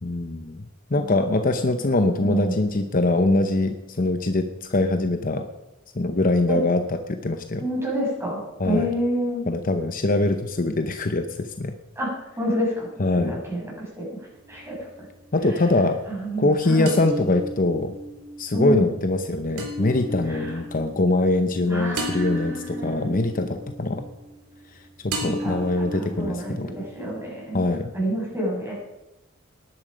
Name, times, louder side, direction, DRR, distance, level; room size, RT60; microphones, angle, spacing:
voice 1, 0.0-0.6 0.9-5.5 5.9-7.6 8.6-8.9 9.5-11.7 13.0-13.4 15.3-16.0 16.4-17.9 18.4-24.0 25.0-26.7 27.5-27.9, left 2 dB, 40° left, 7 dB, 0.8 m, -23 dB
voice 2, 2.2-2.6 6.5-6.6 7.6-9.4 11.9-14.2 14.5-14.9 16.1-16.9 18.5-18.9 20.3-20.5 21.7-23.1 25.2-25.6 25.9-28.7, right 1 dB, 10° right, -4 dB, 6.4 m, -28 dB
sound 1, 14.3-15.2 16.9-24.8 25.1-27.2, right 1 dB, 90° right, 3.3 m, -35 dB
19.0 x 11.0 x 5.2 m, 0.98 s
head